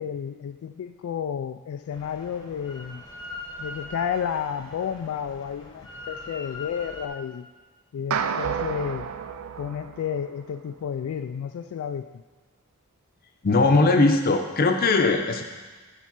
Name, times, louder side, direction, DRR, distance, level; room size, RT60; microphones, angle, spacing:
voice 1, 0.0-3.0 3.6-7.5 7.9-9.1 9.6-12.2, left 8 dB, 85° left, 11 dB, 0.3 m, -31 dB
Drill, 1.9-7.1, left 2 dB, 20° left, 0.9 m, -41 dB
sound 1, 8.1-10.6, right 7 dB, 80° right, 0.4 m, -31 dB
voice 2, 13.4-15.4, left 3 dB, 45° left, 5 dB, 0.6 m, -20 dB
7.1 x 4.3 x 5.9 m, 1.3 s
head